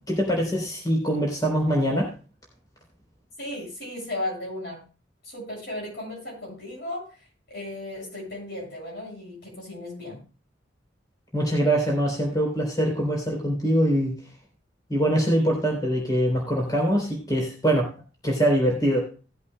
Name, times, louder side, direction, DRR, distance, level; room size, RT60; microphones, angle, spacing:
voice 1, 0.1-2.1 11.3-14.1 14.9-17.9 18.2-19.2, equal, 20° left, -1 dB, 3.7 m, -23 dB
voice 2, 3.4-4.8 5.2-7.1 7.5-10.2, left 1 dB, 60° left, -2 dB, 7.0 m, -35 dB
19.0 x 8.3 x 2.2 m, 0.35 s
head